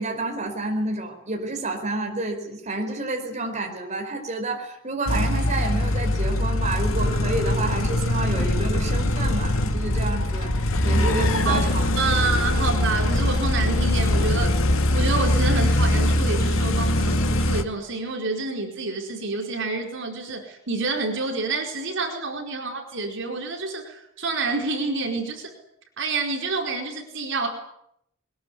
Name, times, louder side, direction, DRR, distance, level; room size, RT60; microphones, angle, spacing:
voice 1, 0.0-10.5 10.8-12.6, right 2 dB, 35° right, 3 dB, 5.0 m, -29 dB
sound 1, 5.1-17.6, left 1 dB, 75° left, 2.3 m, -22 dB
voice 2, 12.0-14.6 14.9-25.5 26.0-27.5, right 3 dB, 65° right, 3 dB, 4.7 m, -28 dB
22.5 x 21.5 x 9.7 m, 0.76 s
head